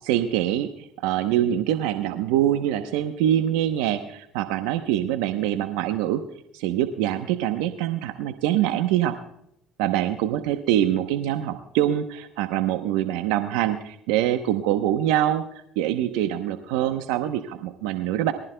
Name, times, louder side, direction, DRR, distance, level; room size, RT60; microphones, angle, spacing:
voice 1, 0.1-6.2 6.5-9.2 9.8-15.4 15.8-18.3, right 12 dB, 80° right, 8 dB, 0.8 m, -24 dB
23.0 x 15.0 x 2.2 m, 0.75 s
supercardioid pair, 75°, 0 cm